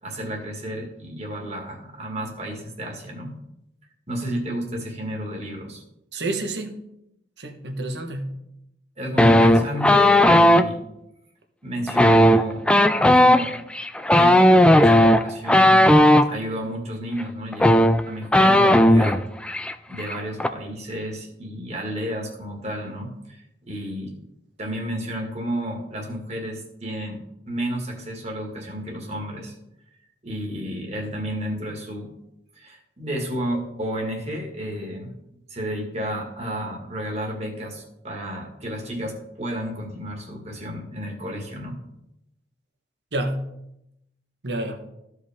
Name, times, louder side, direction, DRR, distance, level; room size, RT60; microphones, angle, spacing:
voice 1, 0.0-3.4 4.1-5.8 9.0-10.8 11.6-12.7 13.2-13.5 14.1-15.9 16.3-17.8 18.1-19.2 19.9-24.1 24.6-27.2 27.5-29.5 30.2-32.1 32.6-35.2 35.5-41.8, equal, 40° right, 0 dB, 1.8 m, -31 dB
voice 2, 6.1-6.8 7.4-8.3 43.1-43.5 44.4-44.8, right 1 dB, 75° right, 4 dB, 1.2 m, -28 dB
sound 1, 9.2-10.6 11.9-16.3 17.2-17.3 17.5-19.2 19.5-19.7 20.0-20.5, left 1 dB, 5° left, 0.3 m, -15 dB
14.5 x 4.9 x 3.5 m, 0.84 s
head